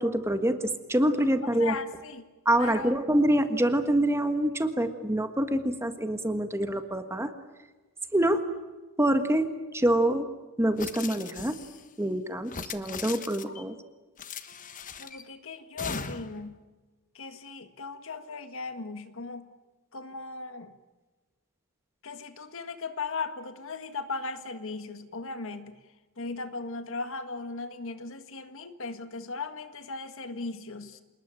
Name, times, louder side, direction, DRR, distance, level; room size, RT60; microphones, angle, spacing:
voice 1, 0.0-1.7 2.4-7.3 8.1-8.4 9.0-9.5 9.7-10.3 10.6-11.6 12.0-13.7, right 1 dB, 10° right, 8 dB, 1.5 m, -26 dB
voice 2, 1.6-2.3 2.6-2.9 15.0-16.6 17.1-19.5 19.9-20.7 22.0-25.8 26.2-31.0, left 4 dB, 60° left, 9 dB, 1.8 m, -37 dB
sound 1, 10.8-11.8 12.4-13.6 14.2-15.2 15.8-16.4, left 5 dB, 35° left, 1.3 m, -39 dB
28.0 x 20.0 x 9.1 m, 1.2 s
head